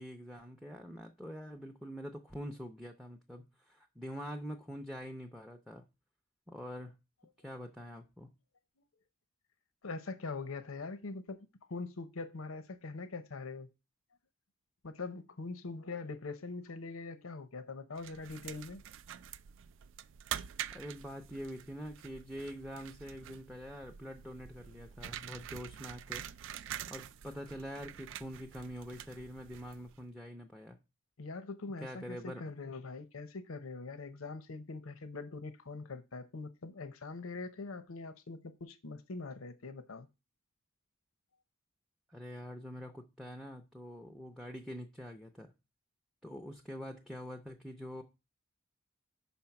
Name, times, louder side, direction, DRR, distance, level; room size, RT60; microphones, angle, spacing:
voice 1, 0.0-5.8 6.5-7.0 7.4-8.3 20.7-26.3 26.9-30.8 31.8-32.4 42.1-45.5 46.2-48.0, equal, ahead, 0.5 m, -45 dB
voice 2, 9.8-13.7 14.8-18.8 31.2-40.1, left 3 dB, 80° left, 0.7 m, -43 dB
sound 1, 18.0-30.0, right 10 dB, 60° right, 0.3 m, -46 dB
5.7 x 4.3 x 5.8 m
head